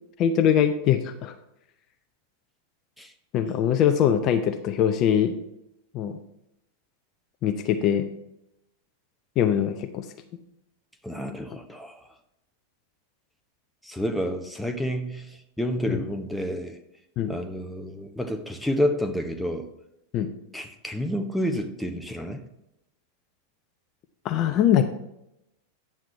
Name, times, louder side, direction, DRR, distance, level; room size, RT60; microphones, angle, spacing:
voice 1, 0.2-1.3 3.3-5.3 5.9-6.2 7.4-8.1 9.4-10.1 15.9-16.0 17.2-17.3 20.1-20.3 24.2-24.9, left 9 dB, 35° left, 8 dB, 0.6 m, -22 dB
voice 2, 11.0-12.1 13.8-16.8 17.3-19.7 20.5-22.5, equal, ahead, 6 dB, 0.8 m, -29 dB
9.3 x 7.3 x 3.3 m, 0.84 s
figure-of-eight pair, 90°, 0 cm